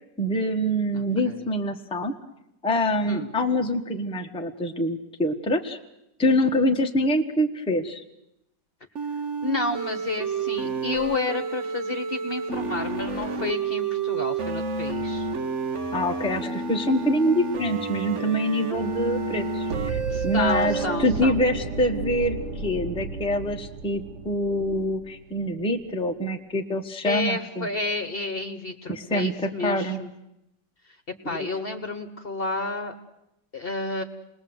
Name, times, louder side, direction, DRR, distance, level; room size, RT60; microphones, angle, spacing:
voice 1, 0.2-2.1 2.6-5.8 6.2-8.0 15.9-27.7 28.9-30.0 31.2-31.5, equal, 5° left, 4 dB, 1.2 m, -25 dB
voice 2, 0.9-1.4 3.1-3.3 9.4-15.3 20.1-21.4 27.0-30.1 31.2-32.9 33.5-34.0, left 3 dB, 35° left, 7 dB, 1.4 m, -30 dB
sound 1, 8.9-20.8, right 4 dB, 45° right, 1.5 m, -30 dB
sound 2, 19.7-25.7, right 5 dB, 70° right, 1.7 m, -33 dB
28.5 x 20.5 x 8.0 m, 0.85 s
omnidirectional pair, 1.8 m